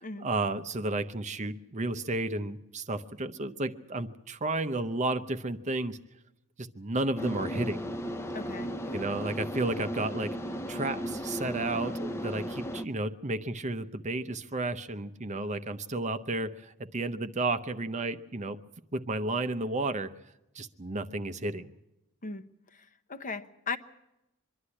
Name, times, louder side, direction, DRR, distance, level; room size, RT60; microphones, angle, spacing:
voice 1, 0.2-6.0 6.6-7.8 8.9-18.6 18.9-20.1 20.5-21.7, right 2 dB, 30° right, 0.7 m, -32 dB
sound 1, 7.2-12.8, equal, 10° left, 0.7 m, -36 dB
voice 2, 8.3-8.7 22.2-22.4 23.1-23.8, left 4 dB, 35° left, 1.0 m, -36 dB
24.5 x 11.5 x 9.8 m
head